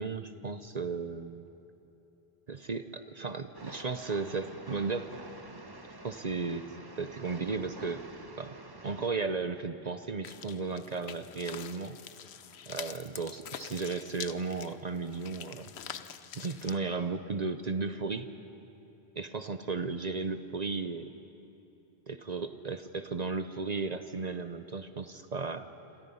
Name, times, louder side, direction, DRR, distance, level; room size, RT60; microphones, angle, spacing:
voice 1, 0.0-1.5 2.5-5.1 6.0-6.7 7.0-8.0 8.4-8.6 8.8-12.0 12.7-15.7 16.3-18.3 19.1-21.1 22.1-25.7, right 4 dB, 45° right, 10 dB, 0.8 m, -35 dB
Train, 3.5-9.1, right 2 dB, 20° right, 1.1 m, -48 dB
sound 1, 10.2-16.8, left 8 dB, 80° left, 1.0 m, -45 dB
28.0 x 26.5 x 5.6 m, 2.9 s
omnidirectional pair, 1.1 m